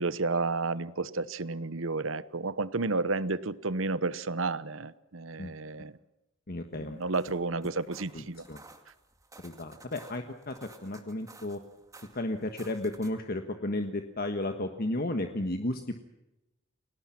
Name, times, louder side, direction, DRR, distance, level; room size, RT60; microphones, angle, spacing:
voice 1, 0.0-5.9 6.7-8.5, right 3 dB, 85° right, 16 dB, 1.1 m, -31 dB
voice 2, 6.5-7.0 8.1-8.2 8.5-8.6 9.4-11.6 12.1-15.9, left 1 dB, 50° left, 6 dB, 1.6 m, -33 dB
sound 1, 6.9-13.3, right 3 dB, 15° right, 2.3 m, -55 dB
29.5 x 19.0 x 6.0 m, 0.92 s
head